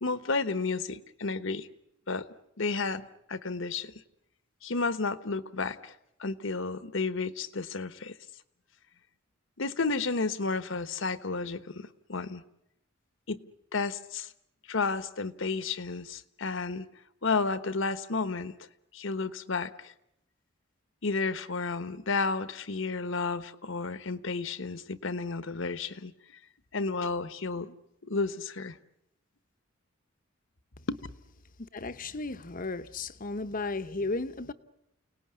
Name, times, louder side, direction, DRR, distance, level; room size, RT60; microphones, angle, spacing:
voice 1, 0.0-1.7 2.1-2.3 2.6-3.9 4.6-5.9 6.2-8.1 9.6-12.4 13.3-13.4 13.7-14.3 14.7-16.9 17.2-18.5 18.9-19.9 21.0-26.1 26.7-27.7 28.0-28.8 30.9-31.0, left 4 dB, 70° left, 1.2 m, -32 dB
voice 2, 31.6-34.5, left 3 dB, 45° left, 0.9 m, -34 dB
29.5 x 18.5 x 9.7 m
head